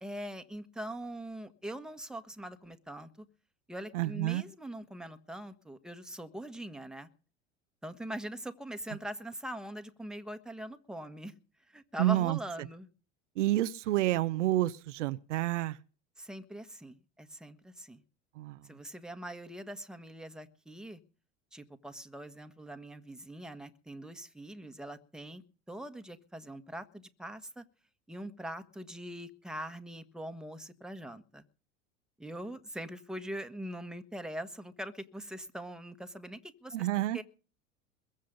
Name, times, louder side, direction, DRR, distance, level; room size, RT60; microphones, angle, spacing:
voice 1, 0.0-3.2 3.7-7.1 7.8-11.3 11.7-12.9 16.2-18.0 18.7-21.0 21.5-25.4 25.7-27.6 28.1-31.5 32.2-36.9 37.1-37.2, right 1 dB, ahead, 1.4 m, -42 dB
voice 2, 3.9-4.4 12.0-12.4 13.4-15.8 18.4-18.6 36.7-37.2, right 15 dB, 75° right, 0.8 m, -29 dB
22.0 x 7.5 x 5.2 m
hypercardioid pair, 85°, 37 cm